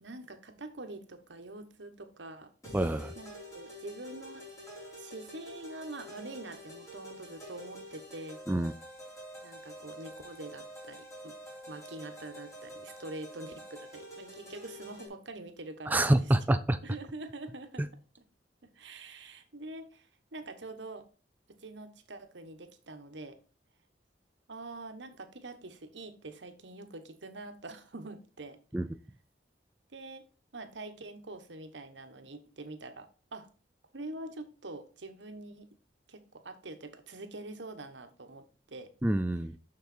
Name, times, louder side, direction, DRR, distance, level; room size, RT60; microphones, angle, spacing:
voice 1, 0.0-2.5 3.1-4.4 4.9-8.4 9.4-11.4 11.7-16.3 16.8-17.9 18.6-21.0 21.5-23.4 24.5-28.6 29.9-30.2 30.5-33.5 33.9-35.7 36.1-38.9, right 2 dB, 80° right, 8 dB, 1.2 m, -45 dB
sound 1, 2.6-15.1, equal, 15° left, 3.8 m, -47 dB
voice 2, 2.7-3.1 8.5-8.7 15.9-16.8 17.8-17.9 28.7-28.9 39.0-39.5, right 1 dB, 10° right, 9 dB, 0.4 m, -26 dB
6.7 x 6.4 x 4.3 m, 0.36 s
head